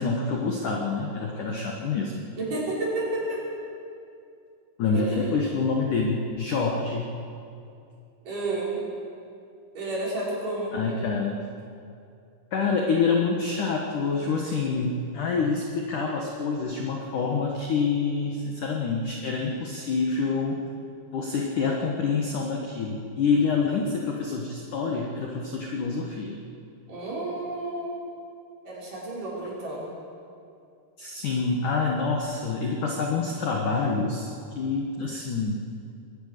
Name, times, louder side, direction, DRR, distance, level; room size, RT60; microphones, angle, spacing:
voice 1, 0.0-2.3 4.8-7.1 10.7-11.5 12.5-20.7 21.1-26.5 31.0-34.3 34.6-35.7, left 4 dB, 70° left, 1 dB, 1.9 m, -27 dB
voice 2, 2.4-3.4 4.9-5.2 8.2-8.8 9.7-10.8 26.9-28.0 28.6-29.9, right 2 dB, 40° right, -6 dB, 6.8 m, -31 dB
22.0 x 18.5 x 6.8 m, 2.5 s
omnidirectional pair, 5.9 m